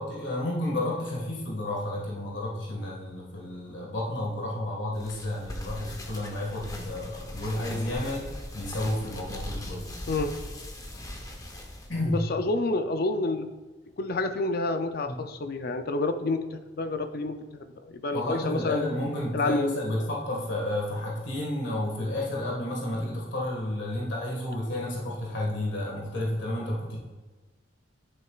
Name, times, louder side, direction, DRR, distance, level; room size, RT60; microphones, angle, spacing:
voice 1, 0.0-8.3 8.5-9.9 11.9-12.2 15.1-15.2 18.1-27.0, left 1 dB, 90° left, -2 dB, 1.6 m, -31 dB
sound 1, 4.9-12.0, left 1 dB, 20° left, 0.9 m, -40 dB
voice 2, 12.1-13.5 14.0-18.9 19.3-19.8, left 2 dB, 55° left, 9 dB, 0.5 m, -29 dB
9.4 x 7.5 x 2.4 m, 1.3 s
head